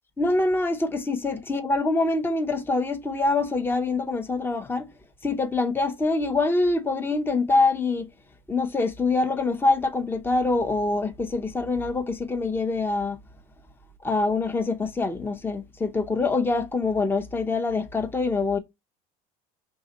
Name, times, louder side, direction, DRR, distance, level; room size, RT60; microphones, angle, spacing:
voice 1, 0.2-4.9 5.2-8.1 8.5-13.2 14.0-18.6, left 3 dB, 10° left, 0.6 m, -25 dB
4.7 x 3.2 x 2.9 m
supercardioid pair, 100°, 18 cm